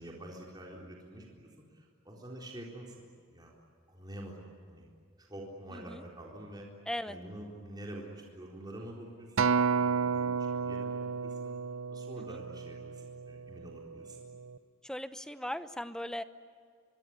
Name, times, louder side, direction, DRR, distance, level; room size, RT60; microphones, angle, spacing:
voice 1, 0.0-3.5 3.9-4.4 4.7-4.9 5.2-6.7 7.1-11.5 11.9-14.2, right 1 dB, 20° right, -2 dB, 4.0 m, -47 dB
voice 2, 5.7-6.0 6.9-7.2 12.2-12.4 14.8-16.2, left 1 dB, 5° left, 12 dB, 0.9 m, -38 dB
Acoustic guitar, 9.4-13.8 14.4-14.6, right 5 dB, 75° right, 0.9 m, -31 dB
24.5 x 24.0 x 9.7 m, 2.1 s
head